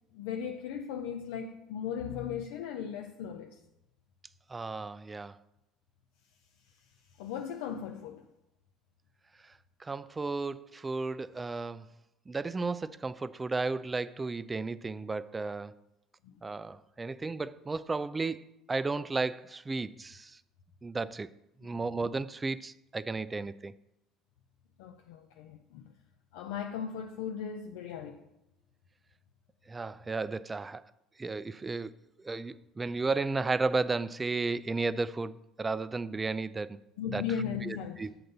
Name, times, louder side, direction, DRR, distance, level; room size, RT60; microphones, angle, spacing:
voice 1, 0.1-3.6 7.2-8.2 16.2-16.4 24.8-25.9 26.3-28.2 37.0-38.1, left 8 dB, 80° left, 0.4 m, -37 dB
voice 2, 4.5-5.4 9.8-11.8 12.3-15.7 16.4-20.3 20.8-21.3 21.6-23.7 29.7-30.8 31.2-31.9 32.2-36.8 37.1-37.2 37.6-38.1, right 3 dB, 20° right, 0.4 m, -33 dB
7.7 x 3.9 x 6.7 m
hypercardioid pair, 75°, 0 cm